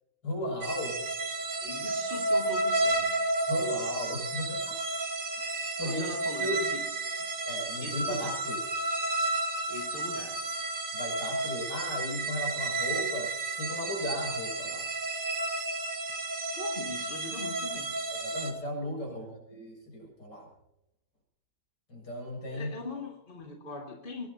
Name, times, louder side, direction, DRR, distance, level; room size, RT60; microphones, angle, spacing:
voice 1, 0.2-1.0 3.5-4.8 5.4-6.1 6.4-6.6 7.4-8.6 10.9-14.9 18.1-20.5 21.9-22.7, left 1 dB, 75° left, -1 dB, 7.8 m, -36 dB
sound 1, 0.6-18.5, right 2 dB, 85° right, 2.5 m, -32 dB
voice 2, 1.5-3.2 5.8-6.9 7.2-7.3 7.8-8.4 9.7-10.4 16.6-18.0 19.1-19.4 22.4-24.3, left 3 dB, 30° left, 0 dB, 2.6 m, -41 dB
23.5 x 19.0 x 2.9 m, 0.83 s
omnidirectional pair, 1.9 m